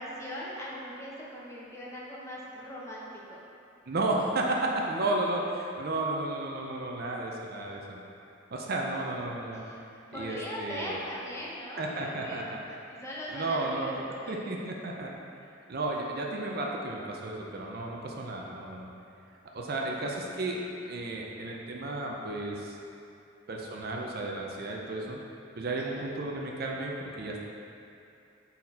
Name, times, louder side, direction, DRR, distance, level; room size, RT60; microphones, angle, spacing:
voice 1, 0.0-3.4 9.5-9.8 10.1-14.6 19.7-20.2 25.8-26.0, equal, 15° left, -6 dB, 0.9 m, -40 dB
voice 2, 3.9-8.0 8.5-9.6 10.1-11.0 11.8-12.6 13.3-14.0 14.3-15.1 15.7-18.9 19.5-22.8 23.5-25.2 25.6-27.4, right 2 dB, 50° right, -1 dB, 0.6 m, -33 dB
6.3 x 4.2 x 4.2 m, 2.6 s
head